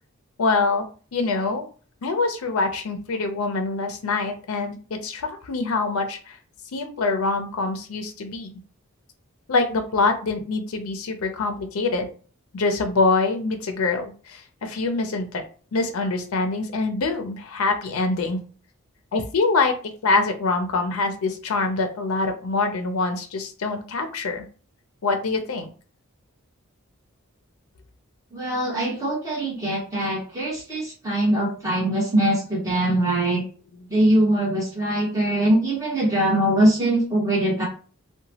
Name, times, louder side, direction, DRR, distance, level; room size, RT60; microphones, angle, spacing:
voice 1, 0.4-0.9 1.1-1.7 2.0-6.4 6.7-8.5 9.5-12.1 12.5-15.4 15.7-18.4 19.1-19.7 20.0-24.4 25.0-25.7 32.7-32.8 33.7-33.8, left 3 dB, 75° left, 5 dB, 0.5 m, -24 dB
voice 2, 28.3-33.4 33.9-37.6, right 1 dB, 15° right, -4 dB, 1.1 m, -22 dB
2.9 x 2.2 x 2.7 m, 0.39 s
head